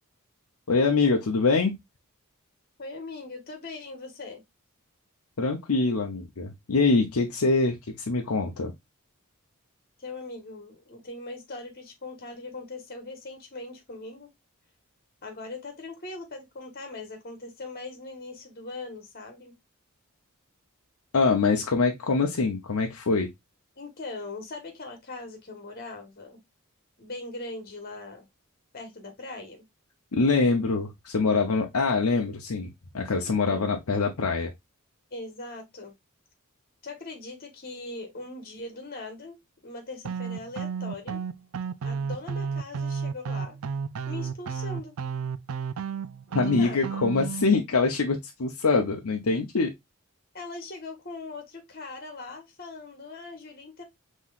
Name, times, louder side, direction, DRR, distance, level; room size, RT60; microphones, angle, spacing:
voice 1, 0.7-1.7 5.4-8.7 21.1-23.3 30.1-34.5 46.3-49.7, left 4 dB, 85° left, 0.7 m, -24 dB
voice 2, 2.8-4.4 10.0-14.3 15.2-19.5 23.8-26.4 27.0-28.2 28.7-29.6 33.4-33.8 35.1-35.9 36.8-39.3 39.6-41.2 41.8-43.6 44.1-44.9 46.3-46.8 50.3-53.8, left 3 dB, 45° left, 1.4 m, -40 dB
sound 1, 40.0-47.5, right 6 dB, 75° right, 0.4 m, -32 dB
5.6 x 3.1 x 2.4 m
head